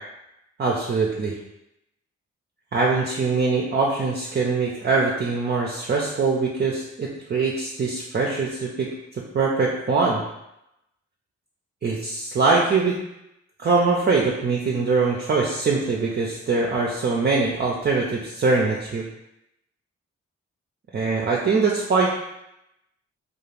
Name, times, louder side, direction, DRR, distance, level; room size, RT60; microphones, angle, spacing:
voice 1, 0.6-1.3 2.7-10.2 11.8-13.0 13.6-19.0 20.9-22.1, right 4 dB, 35° right, -3 dB, 0.5 m, -23 dB
2.4 x 2.3 x 3.2 m, 0.86 s
supercardioid pair, 45°, 30 cm